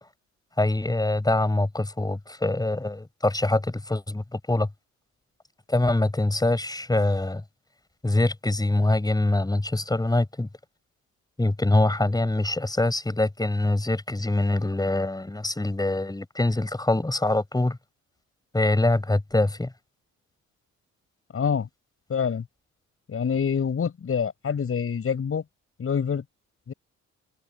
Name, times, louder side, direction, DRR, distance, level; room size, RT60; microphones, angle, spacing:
voice 1, 0.6-4.7 5.7-7.4 8.0-10.5 11.4-17.8 18.5-19.7, left 2 dB, 15° left, 7.3 m, -24 dB
voice 2, 21.3-21.7 22.1-22.4 23.1-25.4 25.8-26.2 26.7-26.8, left 7 dB, 45° left, 7.0 m, -26 dB
cardioid pair, 90°, 30 cm